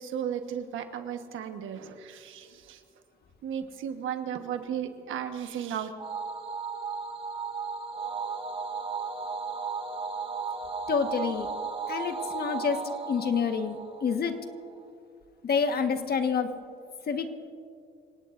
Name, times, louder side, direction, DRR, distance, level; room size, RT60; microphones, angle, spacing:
voice 1, 0.0-2.8 3.4-5.9, right 8 dB, 80° right, 7 dB, 1.3 m, -35 dB
sound 1, 6.0-14.6, right 5 dB, 25° right, 1.4 m, -35 dB
voice 2, 10.9-11.5 11.9-12.8 13.1-14.4 15.4-16.5 17.1-17.3, left 6 dB, 50° left, 6 dB, 1.5 m, -27 dB
27.0 x 17.5 x 2.6 m, 2.4 s
cardioid pair, 90°, 20 cm